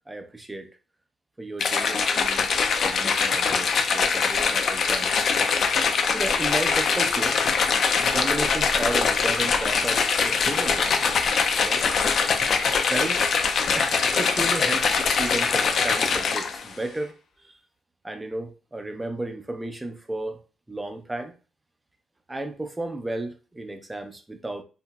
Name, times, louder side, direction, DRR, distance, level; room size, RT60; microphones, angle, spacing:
voice 1, 0.1-0.7 1.4-5.1 5.4-5.6 6.1-7.4 7.9-11.0 11.6-11.8 12.7-13.2 13.7-17.1 17.4-17.5 18.0-20.4 20.7-21.3 22.3-24.6, right 2 dB, 15° right, 0.5 m, -33 dB
sound 1, 1.6-16.7, left 5 dB, 55° left, 0.4 m, -23 dB
2.9 x 2.6 x 2.3 m
cardioid pair, 90°, 0 cm